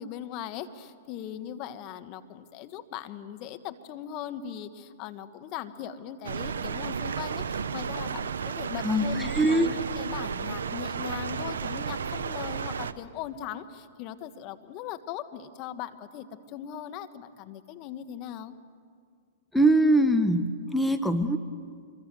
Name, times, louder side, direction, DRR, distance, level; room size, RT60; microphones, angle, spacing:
voice 1, 0.0-18.5, left 10 dB, 40° left, 10 dB, 1.5 m, -39 dB
sound 1, 6.2-12.9, right 6 dB, 80° right, 0.9 m, -33 dB
voice 2, 9.3-9.7 19.5-21.4, right 1 dB, ahead, 7 dB, 1.2 m, -22 dB
26.0 x 24.0 x 7.8 m, 2.1 s
hypercardioid pair, 115°, 0 cm